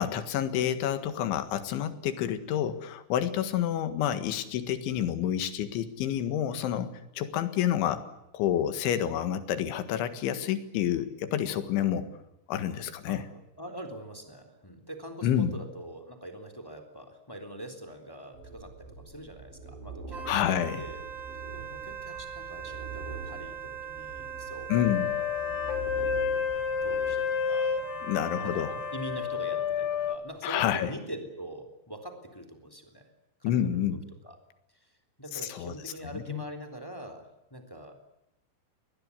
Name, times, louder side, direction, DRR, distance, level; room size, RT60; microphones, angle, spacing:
voice 1, 0.0-8.1 8.3-12.1 12.5-13.2 15.2-15.6 20.3-20.8 24.7-25.1 28.1-28.7 30.4-30.9 33.4-34.0 35.3-35.7 36.1-36.4, left 10 dB, 85° left, 11 dB, 4.1 m, -29 dB
voice 2, 13.6-21.0 21.5-25.3 25.9-26.3 26.8-27.7 28.4-33.1 33.4-34.0 34.2-34.4 34.7-34.9 35.2-37.9, right 1 dB, 5° left, 7 dB, 2.7 m, -43 dB
sound 1, 18.3-27.2, right 4 dB, 70° right, 7.0 m, -45 dB
Wind instrument woodwind instrument, 20.1-29.4, right 7 dB, 25° right, 4.2 m, -41 dB
sound 2, 24.7-30.2, left 8 dB, 65° left, 3.2 m, -30 dB
23.5 x 20.0 x 9.7 m, 0.85 s
omnidirectional pair, 5.3 m